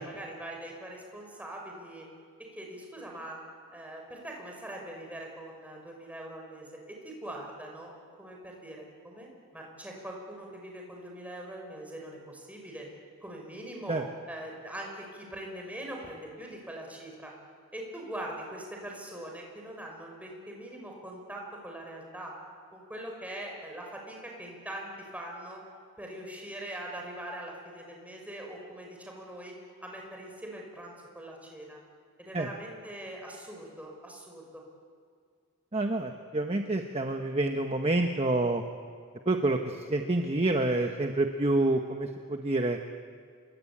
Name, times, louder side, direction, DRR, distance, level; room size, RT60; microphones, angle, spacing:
voice 1, 0.0-2.1 2.5-3.4 3.7-7.9 8.2-12.9 13.2-14.0 14.3-17.3 17.7-22.3 22.7-25.6 26.0-29.5 29.8-31.8 32.2-34.6, right 1 dB, 5° right, 0 dB, 6.0 m, -42 dB
voice 2, 35.7-38.6 39.3-42.8, right 2 dB, 30° right, 4 dB, 1.2 m, -28 dB
27.5 x 22.5 x 8.7 m, 2.1 s
head